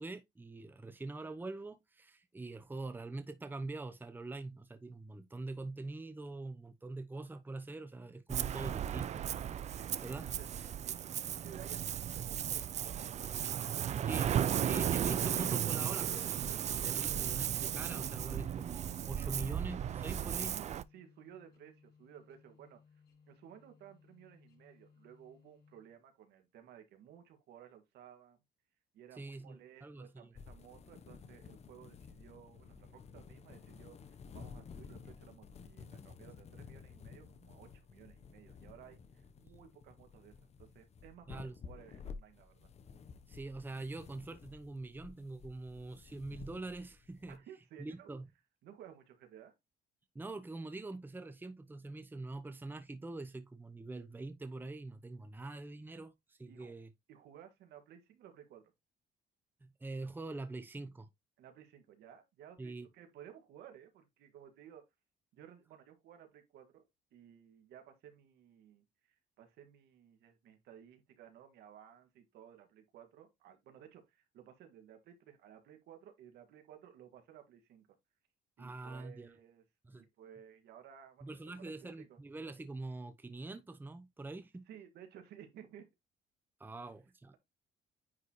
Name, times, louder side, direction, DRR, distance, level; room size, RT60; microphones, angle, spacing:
voice 1, 0.0-9.3 10.0-10.2 14.1-14.2 14.7-16.6 16.8-20.6 29.2-30.3 41.3-41.5 43.3-47.4 47.8-48.3 50.1-56.9 59.6-61.1 62.6-62.9 78.6-79.3 79.8-80.0 81.2-84.6 86.6-87.3, right 2 dB, 10° right, 0.9 m, -44 dB
Ocean, 8.3-20.8, right 10 dB, 40° right, 0.5 m, -35 dB
voice 2, 9.7-14.3 15.9-16.3 18.4-18.5 20.5-22.8 23.3-28.4 28.9-42.7 47.3-48.1 48.6-49.5 56.5-56.8 57.1-58.7 61.4-64.8 65.3-77.9 78.6-79.6 79.9-82.2 84.7-85.9, right 10 dB, 75° right, 2.1 m, -57 dB
sound 1, 9.9-26.0, left 6 dB, 75° left, 4.7 m, -65 dB
sound 2, 30.3-47.4, left 5 dB, 40° left, 1.0 m, -53 dB
9.6 x 4.1 x 3.1 m
cardioid pair, 110°, 17 cm